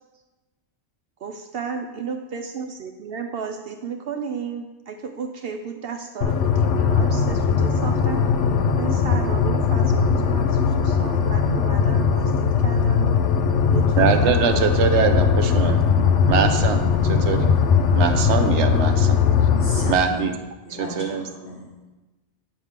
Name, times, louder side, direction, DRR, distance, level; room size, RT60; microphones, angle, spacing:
voice 1, 1.2-8.3 8.8-13.2 13.7-14.9, right 6 dB, 65° right, 6 dB, 0.8 m, -33 dB
sound 1, 6.2-19.9, left 6 dB, 85° left, 1.0 m, -19 dB
voice 2, 14.0-15.8 16.3-17.5 17.9-19.2 19.9-20.3 21.0-21.2, right 6 dB, 80° right, 7 dB, 1.0 m, -22 dB
voice 3, 19.6-21.9, left 1 dB, 50° left, -7 dB, 3.2 m, -36 dB
9.1 x 6.5 x 3.6 m, 1.1 s
omnidirectional pair, 1.2 m